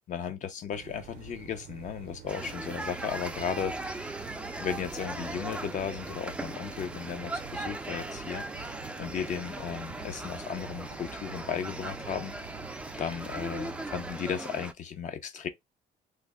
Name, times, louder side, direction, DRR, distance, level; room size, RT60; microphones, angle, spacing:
voice 1, 0.1-4.1 4.6-8.7 9.0-12.3 13.0-15.5, left 8 dB, 45° left, 0.6 m, -35 dB
sound 1, 0.7-14.1, right 10 dB, 70° right, 0.5 m, -47 dB
sound 2, 2.3-14.7, right 2 dB, 5° right, 0.4 m, -39 dB
3.3 x 2.1 x 3.4 m
cardioid pair, 110°, 17 cm